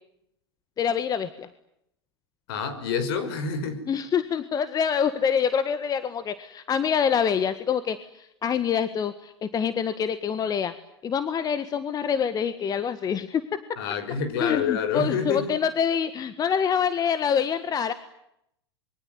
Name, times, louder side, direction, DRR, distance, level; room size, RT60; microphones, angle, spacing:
voice 1, 0.8-1.5 3.9-10.7 11.0-13.4 14.4-17.9, left 7 dB, 25° left, 12 dB, 1.7 m, -26 dB
voice 2, 2.5-3.8 13.8-15.5, left 6 dB, 60° left, 11 dB, 5.7 m, -27 dB
26.5 x 23.5 x 9.3 m, 0.77 s
hypercardioid pair, 100°, 14 cm